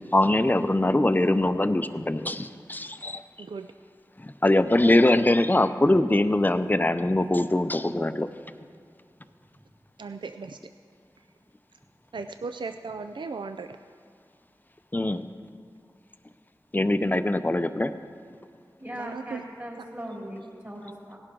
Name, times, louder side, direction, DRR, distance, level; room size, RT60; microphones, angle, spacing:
voice 1, 0.1-3.2 4.2-8.3 14.9-15.3 16.7-17.9, left 1 dB, 20° left, 11 dB, 0.5 m, -22 dB
voice 2, 10.0-10.6 12.1-13.8 18.9-19.4, right 4 dB, 75° right, 8 dB, 0.4 m, -36 dB
voice 3, 18.8-21.2, equal, 30° right, -3 dB, 3.5 m, -39 dB
17.5 x 11.0 x 3.8 m, 2.2 s
wide cardioid pair, 45°, 8 cm